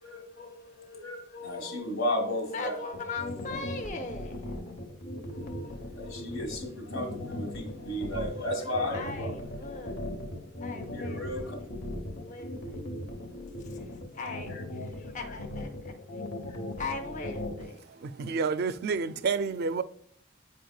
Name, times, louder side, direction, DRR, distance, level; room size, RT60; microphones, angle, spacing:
voice 1, 0.0-3.0 3.3-3.7 5.3-9.6 10.9-11.6 14.5-14.6 15.2-15.4 16.5-16.6 18.2-18.4, left 1 dB, 80° left, 1.6 m, -35 dB
voice 2, 2.5-4.3 8.9-10.0 10.6-11.2 12.2-12.8 14.2-14.5 14.8-15.7 16.8-17.8, left 3 dB, 40° left, 0.6 m, -38 dB
sound 1, 2.9-17.7, left 1 dB, 55° left, 1.0 m, -38 dB
voice 3, 18.0-19.8, right 5 dB, 55° right, 0.3 m, -29 dB
9.2 x 4.7 x 2.3 m
head